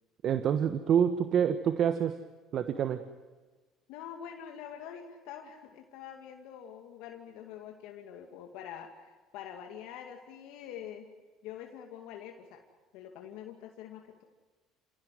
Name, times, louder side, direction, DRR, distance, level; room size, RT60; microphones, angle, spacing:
voice 1, 0.2-2.2 2.5-3.0, right 8 dB, 55° right, 10 dB, 1.3 m, -27 dB
voice 2, 3.9-11.1 11.4-12.6 12.9-14.2, left 9 dB, 75° left, 3 dB, 2.3 m, -45 dB
29.5 x 17.0 x 9.5 m, 1.3 s
supercardioid pair, 85°, 0 cm